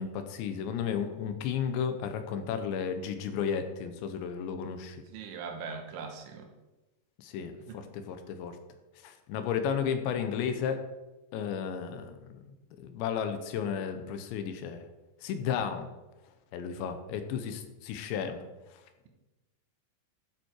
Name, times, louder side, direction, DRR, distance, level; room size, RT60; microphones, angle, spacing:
voice 1, 0.0-5.0 7.2-8.5 9.0-10.8 11.3-12.5 12.8-14.8 15.2-15.9 16.5-18.4, left 7 dB, 80° left, 8 dB, 3.1 m, -33 dB
voice 2, 5.1-6.5 7.7-7.8, right 5 dB, 90° right, 4 dB, 3.8 m, -40 dB
12.5 x 7.7 x 4.6 m, 1.1 s
omnidirectional pair, 5.2 m